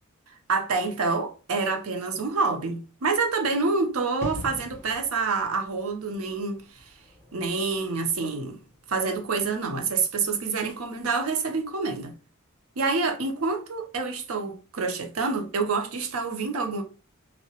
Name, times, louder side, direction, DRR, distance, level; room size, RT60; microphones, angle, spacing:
voice 1, 0.5-6.6 7.3-8.6 8.9-12.1 12.8-16.8, right 4 dB, 70° right, 0.6 m, -27 dB
sound 1, 4.2-10.7 11.0-11.1, left 1 dB, 10° left, 1.0 m, -44 dB
2.7 x 2.1 x 2.8 m
head